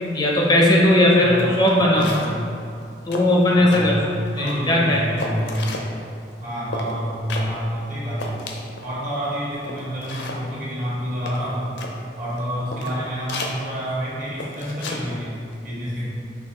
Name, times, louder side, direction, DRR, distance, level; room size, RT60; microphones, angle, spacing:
voice 1, 0.1-2.1 3.1-3.9 4.4-5.0, left 1 dB, 25° left, -3 dB, 0.4 m, -17 dB
voice 2, 1.2-2.6 3.5-4.1 4.3-5.9 6.4-8.5 8.8-11.7 12.2-15.4 15.6-16.1, equal, 50° right, -8 dB, 1.5 m, -28 dB
sound 1, 1.4-1.5 1.7-2.4 2.8-2.9 3.1-3.8 4.3-4.7 5.2-5.9 6.7-6.9 7.3-7.5 7.8-7.9 8.2-8.9 9.3-9.4 9.6-10.4 11.3-11.9 12.4-12.5 12.7-13.0 13.3-13.5 14.4-15.0 15.3-15.5, left 2 dB, 75° left, 0.5 m, -33 dB
6.3 x 2.6 x 2.9 m, 2.5 s
head